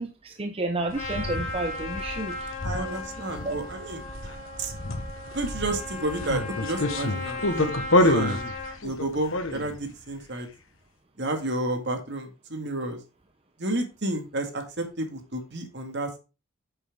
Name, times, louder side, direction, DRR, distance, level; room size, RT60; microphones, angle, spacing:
voice 1, 0.0-2.5 2.8-3.0 3.4-3.5, right 2 dB, 25° right, 5 dB, 0.7 m, -31 dB
sound 1, 0.9-9.9, left 2 dB, 65° left, 1.4 m, -29 dB
Trumpet, 0.9-8.8, left 2 dB, 35° left, 3.6 m, -37 dB
voice 2, 2.6-4.0 4.6-4.7 5.3-8.5 8.8-10.5 11.2-13.0 13.6-16.2, right 2 dB, 50° right, 5 dB, 2.1 m, -31 dB
9.5 x 8.0 x 3.7 m, 0.29 s
head